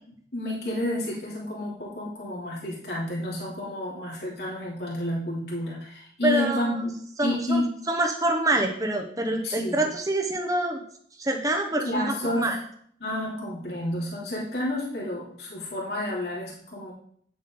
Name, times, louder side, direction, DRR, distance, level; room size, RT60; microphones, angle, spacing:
voice 1, 0.3-6.9 7.2-7.8 9.4-9.8 11.8-12.5 13.0-16.9, left 1 dB, 70° left, -5 dB, 3.1 m, -30 dB
voice 2, 6.2-6.7 7.2-10.8 11.2-12.6, right 1 dB, 20° right, 3 dB, 1.1 m, -26 dB
9.5 x 7.7 x 3.9 m, 0.62 s
head